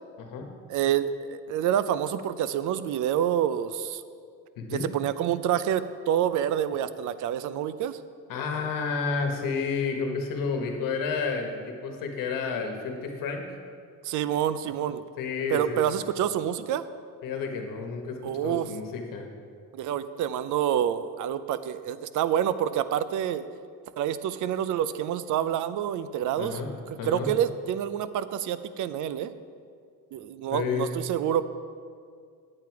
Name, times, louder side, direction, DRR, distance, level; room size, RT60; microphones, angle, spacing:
voice 1, 0.7-4.0 4.7-8.0 14.0-15.0 15.5-16.9 18.2-18.7 19.7-23.5 24.0-26.6 27.0-29.3 30.1-31.5, right 10 dB, 55° right, 14 dB, 0.5 m, -27 dB
voice 2, 4.6-4.9 8.3-13.4 15.2-15.8 17.2-19.3 26.4-26.7 27.0-27.3 30.5-30.9, left 5 dB, 65° left, 4 dB, 1.4 m, -31 dB
9.1 x 8.8 x 4.7 m, 2.2 s
cardioid pair, 125°, 36 cm